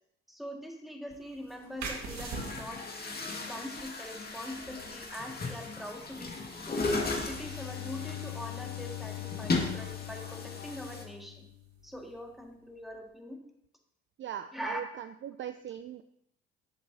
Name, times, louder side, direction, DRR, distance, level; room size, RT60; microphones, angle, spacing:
voice 1, 0.3-6.8 7.3-11.5 11.8-13.4 14.5-14.8, equal, ahead, 2 dB, 1.9 m, -43 dB
Chatter / Gurgling / Tap, 1.1-1.2 1.9-11.0, left 3 dB, 30° left, 1.9 m, -36 dB
sound 1, 1.8-13.1, right 4 dB, 60° right, 1.8 m, -48 dB
Bowed string instrument, 7.0-12.0, left 17 dB, 75° left, 0.9 m, -42 dB
voice 2, 14.2-16.0, right 10 dB, 40° right, 10 dB, 0.5 m, -40 dB
12.0 x 7.3 x 2.8 m, 0.77 s
hypercardioid pair, 50°, 31 cm